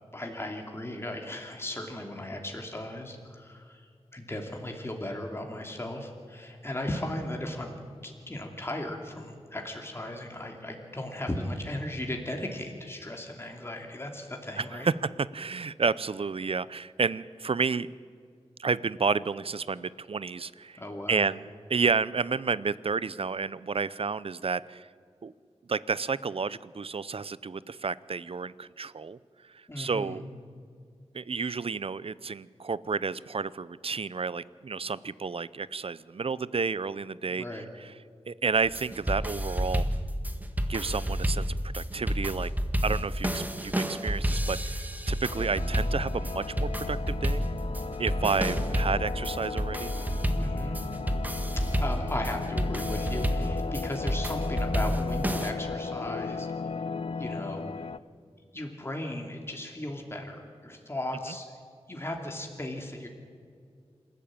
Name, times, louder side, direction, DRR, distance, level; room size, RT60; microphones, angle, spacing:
voice 1, 0.1-7.8 8.0-14.9 20.8-21.3 29.7-30.2 37.3-37.7 50.4-50.8 51.6-56.5 56.8-56.9 57.2-57.9 58.5-61.5 61.9-63.1, left 1 dB, 20° left, 2 dB, 2.8 m, -36 dB
voice 2, 14.6-17.9 18.6-20.8 21.1-24.9 25.2-25.3 25.7-29.2 29.5-30.2 31.1-37.4 38.3-39.8 40.7-42.5 42.8-47.4 48.0-49.9, right 5 dB, 55° right, 18 dB, 0.6 m, -31 dB
sound 1, 38.6-55.5, equal, 15° right, 1.8 m, -30 dB
sound 2, 45.3-58.0, left 4 dB, 55° left, 0.5 m, -36 dB
27.0 x 13.5 x 9.0 m, 2.2 s
wide cardioid pair, 95°, 12 cm